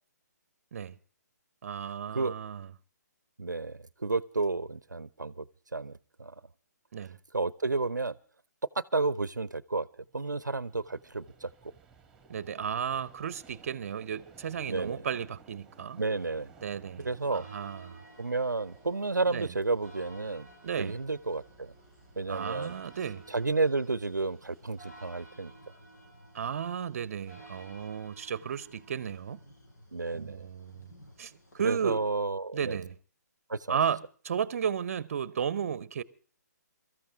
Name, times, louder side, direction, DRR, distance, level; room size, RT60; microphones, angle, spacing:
voice 1, 1.6-2.7 6.9-7.2 12.3-16.0 16.6-18.0 19.3-19.5 20.6-21.0 22.3-23.2 26.3-29.4 30.1-30.9 31.2-32.0 32.5-32.9 33.7-36.0, right 8 dB, 50° right, 0.8 m, -34 dB
voice 2, 3.4-5.4 5.7-6.3 7.3-8.1 8.9-9.9 10.1-11.7 14.7-15.0 16.0-16.5 17.0-17.4 18.2-20.5 20.8-21.7 22.2-22.7 23.3-25.5 29.9-30.5 31.6-32.8 33.5-33.8, right 3 dB, 80° right, 0.7 m, -31 dB
Vehicle, 10.1-26.4, right 5 dB, 5° right, 1.9 m, -60 dB
sound 1, 17.0-31.8, right 1 dB, 75° left, 7.2 m, -54 dB
23.5 x 14.0 x 3.6 m
figure-of-eight pair, 135°, 10 cm